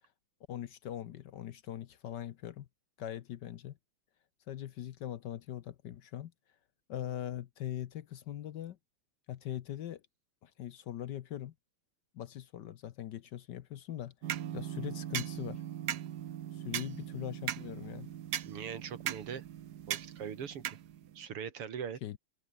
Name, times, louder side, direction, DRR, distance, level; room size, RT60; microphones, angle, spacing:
voice 1, 0.5-2.7 3.0-3.8 4.5-6.3 6.9-8.8 9.3-10.0 10.4-11.5 12.1-14.1 14.5-15.6 16.5-18.1 22.0-22.2, left 11 dB, 65° left, 1.2 m, -41 dB
sound 1, 14.2-21.2, right 11 dB, 60° right, 1.2 m, -39 dB
voice 2, 18.4-19.4 19.9-20.8 21.1-22.0, right 7 dB, 85° right, 3.1 m, -41 dB
open air
omnidirectional pair, 2.4 m